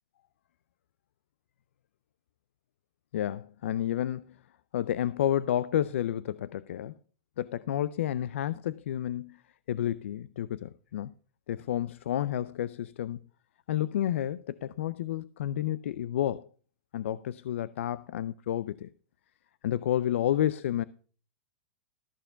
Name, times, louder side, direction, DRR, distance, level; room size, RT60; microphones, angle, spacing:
voice 1, 3.1-4.4 4.7-6.9 7.4-9.4 9.7-11.1 11.5-13.2 13.7-16.5 16.9-18.9 19.6-20.8, left 11 dB, 75° left, 0.5 m, -30 dB
13.5 x 6.8 x 5.6 m
supercardioid pair, 165°, 7 cm